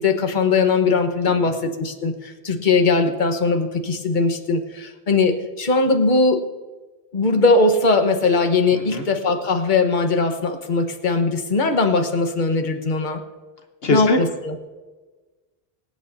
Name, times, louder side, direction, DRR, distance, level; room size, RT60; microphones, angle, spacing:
voice 1, 0.0-6.4 7.1-13.2 13.9-14.5, left 3 dB, 50° left, 5 dB, 1.3 m, -20 dB
voice 2, 8.7-9.0 13.8-14.2, left 2 dB, 70° left, 3 dB, 1.2 m, -22 dB
25.5 x 8.8 x 2.7 m, 1.3 s
omnidirectional pair, 1.1 m